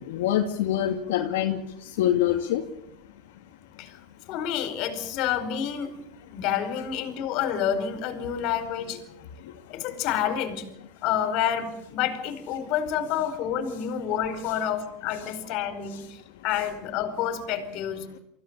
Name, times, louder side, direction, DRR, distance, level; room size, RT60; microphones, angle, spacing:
voice 1, 0.1-1.6 2.0-2.6, left 11 dB, 80° left, 3 dB, 2.3 m, -24 dB
voice 2, 4.3-5.9 6.3-9.0 9.7-10.7 11.0-18.0, left 9 dB, 50° left, 10 dB, 4.8 m, -29 dB
24.5 x 16.0 x 8.8 m, 0.77 s
supercardioid pair, 130°, 0 cm